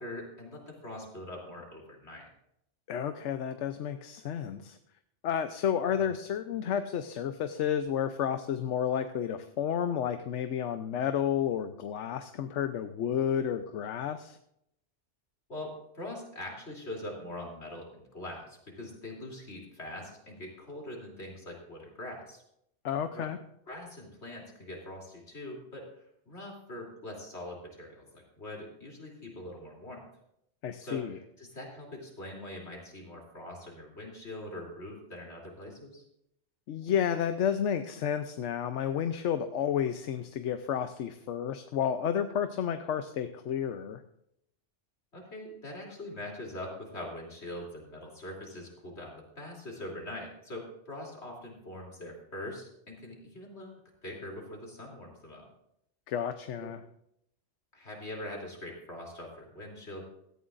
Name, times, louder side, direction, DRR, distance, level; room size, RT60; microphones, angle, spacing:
voice 1, 0.0-2.3 5.8-6.1 15.5-22.4 22.9-23.3 23.7-25.9 26.3-30.0 30.8-36.0 45.1-55.5 56.6-56.7 57.7-60.0, left 1 dB, 65° left, -1 dB, 3.5 m, -43 dB
voice 2, 2.9-4.8 5.2-14.4 22.8-23.4 30.6-31.2 36.7-44.0 56.1-56.8, left 8 dB, 80° left, 8 dB, 1.0 m, -31 dB
16.5 x 14.0 x 2.5 m, 0.76 s
omnidirectional pair, 1.2 m